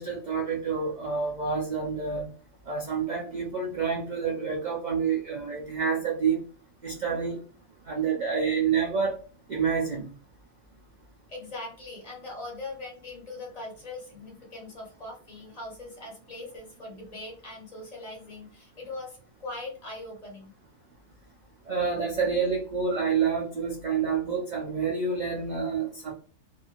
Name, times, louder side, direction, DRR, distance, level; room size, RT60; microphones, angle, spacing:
voice 1, 0.0-2.3 2.7-6.4 6.8-7.4 7.9-9.2 9.5-10.1 21.7-26.1, right 5 dB, 80° right, -1 dB, 0.4 m, -28 dB
voice 2, 11.3-20.5, left 2 dB, 30° left, -1 dB, 0.8 m, -41 dB
2.8 x 2.6 x 2.4 m, 0.40 s
omnidirectional pair, 1.5 m